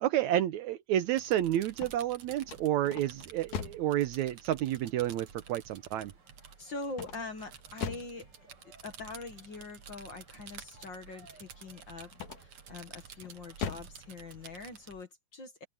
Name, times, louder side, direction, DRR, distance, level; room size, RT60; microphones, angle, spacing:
voice 1, 0.0-6.1, right 12 dB, 75° right, 1.9 m, -30 dB
sound 1, 1.0-15.0, right 7 dB, 55° right, 2.7 m, -52 dB
sound 2, 1.6-4.0 6.9-8.2 12.1-12.7 13.2-14.0, left 7 dB, 75° left, 3.4 m, -40 dB
sound 3, 3.2-14.9, right 2 dB, 30° right, 8.5 m, -64 dB
voice 2, 6.6-8.3 8.8-12.1 12.4-15.6, left 3 dB, 45° left, 1.9 m, -43 dB
open air
omnidirectional pair, 3.7 m